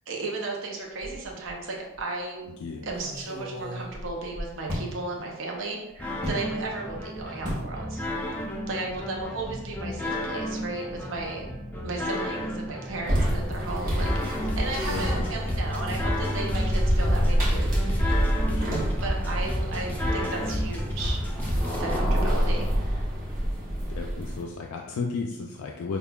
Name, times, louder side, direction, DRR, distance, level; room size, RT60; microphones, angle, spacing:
voice 1, 0.1-8.0 8.7-11.5 11.8-14.1 14.4-18.1 19.0-21.2 21.8-23.0, right 3 dB, 65° right, -1 dB, 0.6 m, -35 dB
sound 1, 1.0-1.6 2.0-2.1 2.9-4.9 6.2-6.5 7.4-7.7 8.0-8.4 8.6-8.8, equal, 20° right, 1.2 m, -35 dB
sound 2, 6.0-22.0, left 1 dB, 10° left, 0.4 m, -32 dB
sound 3, 13.0-24.5, equal, 40° right, 0.9 m, -27 dB
voice 2, 13.1-13.4 14.9-15.2 18.5-18.9 23.9-26.0, left 4 dB, 90° left, 1 dB, 0.3 m, -34 dB
5.3 x 2.2 x 2.3 m, 0.93 s
head